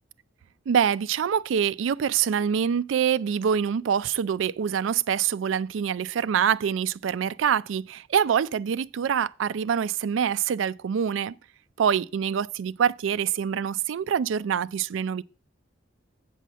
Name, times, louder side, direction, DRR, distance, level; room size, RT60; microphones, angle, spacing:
voice 1, 0.7-11.3 11.8-15.2, right 8 dB, 85° right, 0.4 m, -25 dB
8.4 x 5.6 x 6.2 m
head